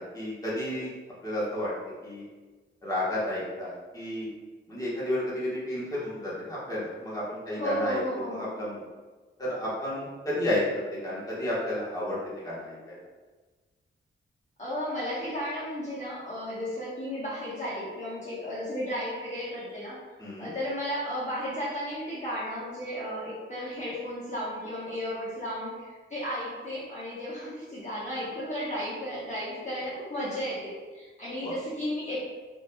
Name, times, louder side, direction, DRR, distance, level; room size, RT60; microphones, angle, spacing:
voice 1, 0.1-0.9 1.2-1.7 2.0-2.3 2.8-4.3 4.7-8.8 9.4-10.6 10.9-13.0 20.2-20.5 31.4-31.5, left 1 dB, 15° left, -8 dB, 1.3 m, -32 dB
voice 2, 7.6-8.6 14.6-20.0 20.4-32.2, equal, 35° left, -9 dB, 1.2 m, -34 dB
5.0 x 2.7 x 2.2 m, 1.3 s
wide cardioid pair, 95°, 21 cm